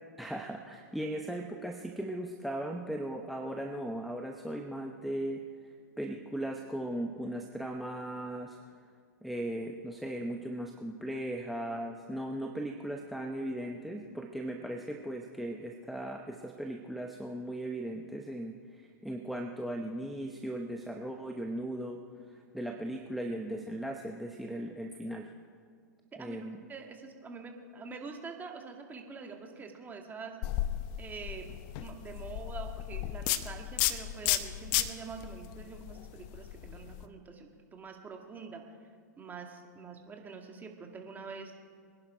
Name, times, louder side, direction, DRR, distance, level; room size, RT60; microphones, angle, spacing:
voice 1, 0.2-8.6 9.2-22.0 22.3-25.3 26.2-26.6, right 1 dB, ahead, 4 dB, 0.9 m, -38 dB
voice 2, 26.7-30.4 31.0-31.5 31.8-38.6 39.2-41.5, right 4 dB, 20° right, 3 dB, 2.1 m, -45 dB
sound 1, 30.4-37.0, left 13 dB, 45° left, 0.9 m, -34 dB
24.0 x 11.0 x 5.1 m, 2.1 s
hypercardioid pair, 110°, 10 cm